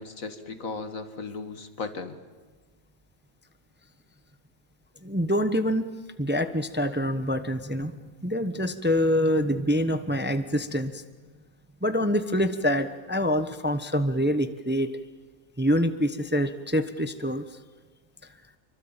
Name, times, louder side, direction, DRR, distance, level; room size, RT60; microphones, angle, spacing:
voice 1, 0.0-2.2, left 4 dB, 70° left, 9 dB, 2.2 m, -36 dB
voice 2, 5.0-5.9 6.2-7.9 8.2-11.0 11.8-14.9 15.6-17.4, equal, 10° right, 10 dB, 0.9 m, -25 dB
27.0 x 24.0 x 9.0 m, 1.3 s
omnidirectional pair, 1.4 m